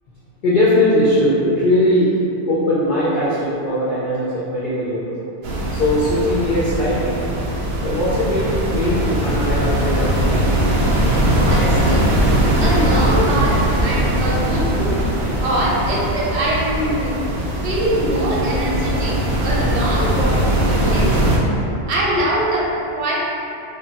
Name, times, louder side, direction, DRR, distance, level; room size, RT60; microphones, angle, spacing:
voice 1, 0.4-2.1 2.5-5.1 5.7-7.1 7.8-10.6 21.0-21.2, left 1 dB, 60° left, -10 dB, 0.6 m, -19 dB
sound 1, 5.4-21.4, right 1 dB, 60° right, 0.5 m, -20 dB
voice 2, 11.4-12.0 12.6-14.9 15.4-17.2 17.6-21.1 21.7-22.7 22.9-23.2, right 1 dB, 75° right, -6 dB, 0.9 m, -23 dB
2.2 x 2.1 x 3.7 m, 2.7 s
omnidirectional pair, 1.2 m